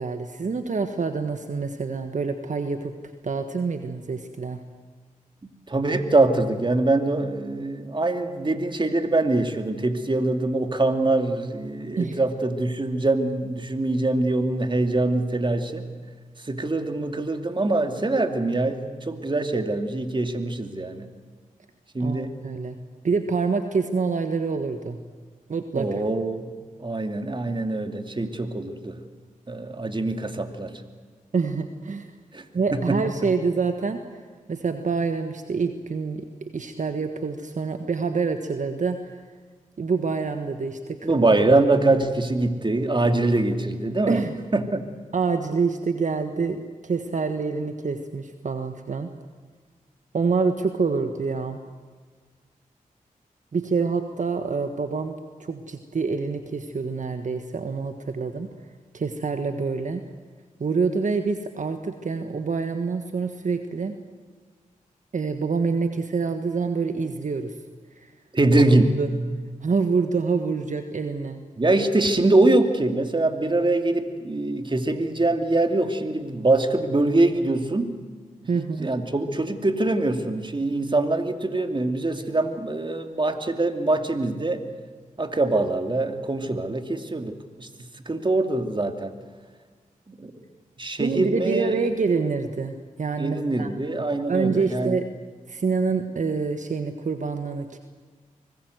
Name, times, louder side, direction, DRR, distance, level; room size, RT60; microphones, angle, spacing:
voice 1, 0.0-2.9 3.2-4.6 12.0-12.2 22.0-22.8 23.0-25.0 25.5-26.0 31.3-32.1 32.5-34.0 34.5-36.3 36.5-39.2 39.8-41.1 44.1-44.4 45.1-49.1 50.1-51.6 53.5-58.5 58.9-60.0 60.6-63.9 65.1-67.5 68.0-68.1 69.0-69.1 69.6-71.4 78.5-78.9 91.0-93.7 94.3-95.1 95.5-97.8, right 4 dB, 60° right, 7 dB, 1.5 m, -26 dB
voice 2, 5.7-15.8 16.4-21.1 21.9-22.3 25.8-26.4 26.8-29.0 29.5-30.8 32.3-32.4 32.7-33.0 41.0-44.2 44.5-44.9 68.3-69.0 71.6-77.9 78.6-84.6 85.2-87.7 88.1-89.1 90.1-90.3 90.8-91.9 93.2-95.0, right 2 dB, 35° right, 7 dB, 2.5 m, -23 dB
25.0 x 20.0 x 8.0 m, 1.5 s
cardioid pair, 50°, 14 cm